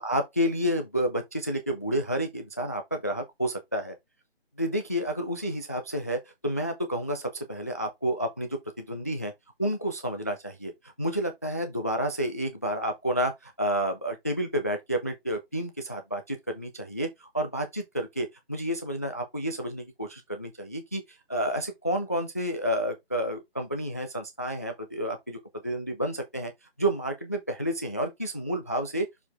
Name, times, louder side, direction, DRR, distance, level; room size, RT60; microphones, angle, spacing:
voice 1, 0.0-3.9 4.6-9.3 9.6-21.0 21.3-25.4 25.6-26.5 26.8-29.1, equal, 15° left, 0.5 m, -30 dB
6.7 x 4.7 x 3.3 m
figure-of-eight pair, 155°, 32 cm